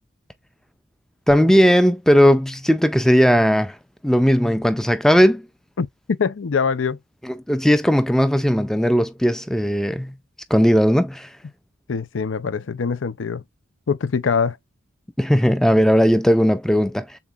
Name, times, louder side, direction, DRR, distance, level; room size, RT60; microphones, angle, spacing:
voice 1, 1.3-3.8 4.0-5.5 7.2-10.1 10.5-11.3 15.2-17.2, equal, ahead, 0.3 m, -17 dB
voice 2, 6.2-7.0 11.9-13.4 13.9-14.6, left 5 dB, 75° left, 0.5 m, -23 dB
7.1 x 2.8 x 2.4 m
head